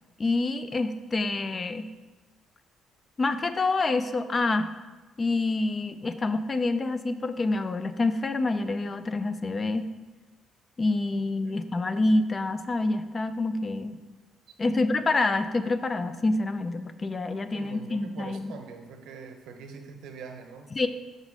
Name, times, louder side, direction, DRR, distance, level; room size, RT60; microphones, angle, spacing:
voice 1, 0.2-1.9 3.2-4.7 5.2-9.9 10.8-14.0 14.6-18.5 20.8-20.9, left 2 dB, 25° left, 11 dB, 0.3 m, -27 dB
voice 2, 14.6-15.0 17.5-20.9, right 5 dB, 80° right, 5 dB, 0.8 m, -44 dB
5.3 x 4.0 x 5.9 m, 1.2 s
cardioid pair, 145°, 0 cm